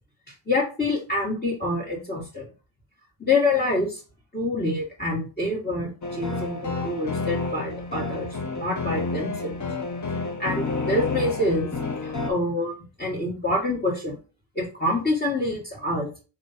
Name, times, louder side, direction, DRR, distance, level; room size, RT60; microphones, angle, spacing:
voice 1, 0.5-2.5 3.2-4.0 4.3-8.3 8.6-9.6 10.4-11.7 12.0-14.2 14.6-16.2, left 2 dB, 20° left, -3 dB, 1.8 m, -26 dB
sound 1, 6.0-12.3, left 3 dB, 40° left, 1.1 m, -30 dB
4.1 x 3.0 x 4.2 m, 0.33 s
cardioid pair, 55°, 47 cm